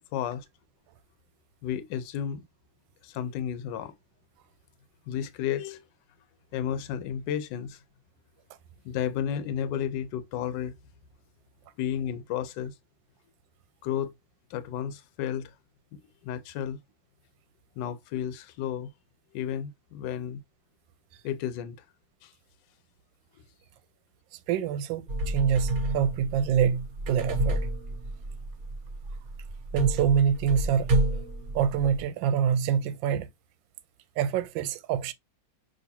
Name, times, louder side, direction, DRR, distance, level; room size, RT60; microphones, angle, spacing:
voice 1, 0.1-0.5 1.6-2.4 3.0-3.9 5.1-5.8 6.5-7.8 8.8-10.7 11.8-12.7 13.8-14.1 14.5-15.5 16.2-16.8 17.8-18.9 19.3-20.4 21.2-21.8 22.2-22.3, left 9 dB, 75° left, 1.3 m, -32 dB
voice 2, 24.5-27.6 29.7-30.9 31.5-33.3 34.2-35.1, right 8 dB, 85° right, 1.3 m, -25 dB
sound 1, 25.1-32.0, right 1 dB, 55° right, 1.3 m, -30 dB
6.4 x 2.9 x 2.7 m
omnidirectional pair, 2.0 m